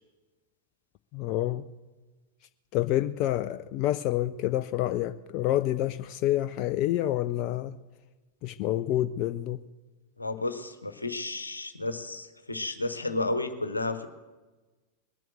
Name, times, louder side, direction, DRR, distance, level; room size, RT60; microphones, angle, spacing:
voice 1, 1.1-1.7 2.7-7.8 8.4-9.6, left 14 dB, 40° left, 0.4 m, -28 dB
voice 2, 10.2-14.1, left 2 dB, 80° left, 1.1 m, -32 dB
20.0 x 7.7 x 7.7 m
figure-of-eight pair, 90°, 0 cm